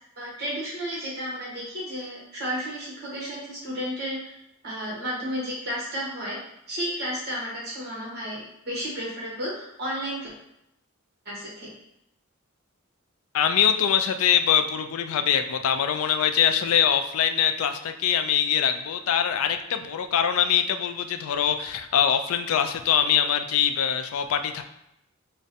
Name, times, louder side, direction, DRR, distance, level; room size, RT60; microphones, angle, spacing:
voice 1, 0.2-4.3 4.6-6.4 6.7-10.3 11.2-11.7, equal, 50° right, -6 dB, 1.2 m, -32 dB
voice 2, 13.3-24.6, left 8 dB, 75° left, 7 dB, 0.3 m, -23 dB
4.7 x 2.2 x 2.7 m, 0.81 s
head